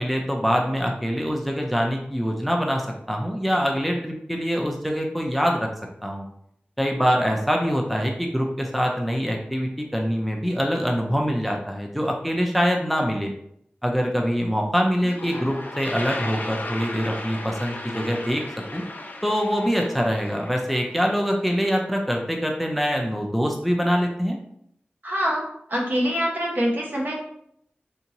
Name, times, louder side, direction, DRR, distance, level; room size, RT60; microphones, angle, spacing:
voice 1, 0.0-5.7 6.0-6.2 6.8-13.3 13.8-18.4 18.7-18.8 19.2-24.4, equal, ahead, 1 dB, 0.5 m, -24 dB
Toilet flush, 14.6-14.7 14.9-21.8, left 2 dB, 55° left, 0.6 m, -36 dB
voice 2, 25.0-25.4 25.7-27.1, equal, 60° right, -2 dB, 1.0 m, -24 dB
3.4 x 2.8 x 2.9 m, 0.71 s
wide cardioid pair, 55°, 4 cm